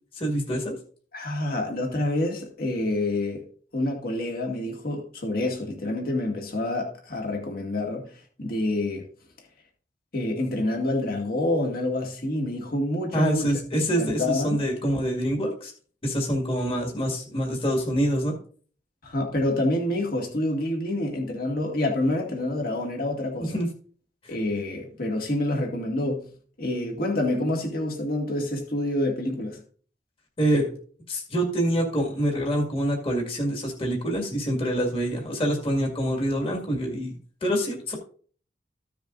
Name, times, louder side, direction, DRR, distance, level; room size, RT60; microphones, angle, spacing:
voice 1, 0.1-0.8 13.1-15.7 16.0-18.4 23.5-23.7 24.2-24.4 30.4-30.7 31.1-38.0, right 1 dB, 30° left, 0 dB, 2.0 m, -26 dB
voice 2, 1.1-3.4 3.7-8.1 8.4-9.1 10.1-14.6 19.0-23.6 24.3-26.3 26.6-29.6, left 1 dB, 55° left, 1 dB, 1.9 m, -27 dB
14.5 x 7.0 x 2.5 m, 0.43 s
head